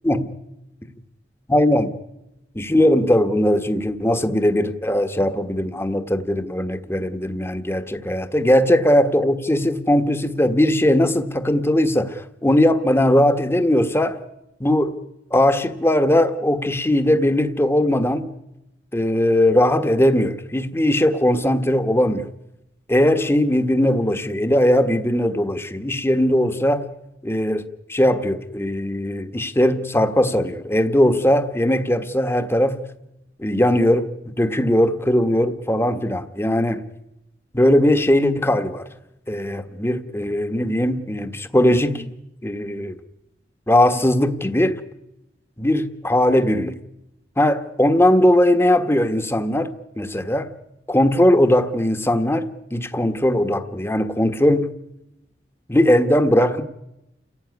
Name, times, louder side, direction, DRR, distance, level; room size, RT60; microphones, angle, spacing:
voice 1, 1.5-1.9 2.5-14.2 14.6-15.0 15.3-18.3 18.9-22.3 22.9-26.9 27.2-27.6 27.9-32.8 33.4-36.8 37.5-38.9 39.3-42.1 42.4-43.0 43.7-44.8 45.6-46.7 47.4-50.5 50.9-54.7 55.7-56.6, left 1 dB, 15° left, 1.4 m, -19 dB
29.0 x 17.0 x 9.6 m
head